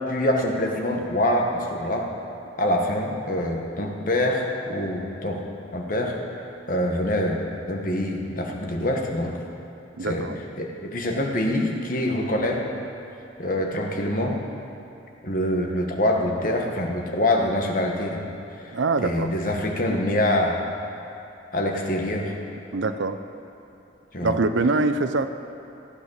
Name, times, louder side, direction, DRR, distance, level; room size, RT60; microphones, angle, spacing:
voice 1, 0.1-2.1 2.6-5.4 5.7-6.2 6.7-7.4 7.7-9.4 10.0-10.3 10.6-12.6 13.4-14.4 15.2-18.3 19.0-20.6 21.5-22.3 24.1-24.4, left 1 dB, 45° left, 1 dB, 1.4 m, -25 dB
voice 2, 10.0-10.4 18.7-19.3 22.7-23.2 24.2-25.3, right 3 dB, 85° right, 10 dB, 0.6 m, -24 dB
15.0 x 8.4 x 6.5 m, 2.7 s
head